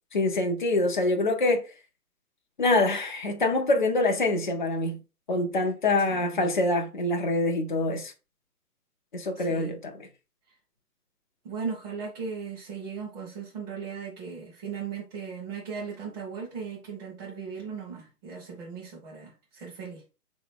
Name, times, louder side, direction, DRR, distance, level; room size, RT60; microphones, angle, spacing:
voice 1, 0.1-1.6 2.6-5.0 5.3-8.1 9.1-10.1, left 2 dB, 35° left, 0.5 m, -25 dB
voice 2, 6.1-6.5 9.3-9.7 11.4-20.0, right 6 dB, 25° right, 1.2 m, -37 dB
3.7 x 3.0 x 3.6 m
figure-of-eight pair, 140°, 47 cm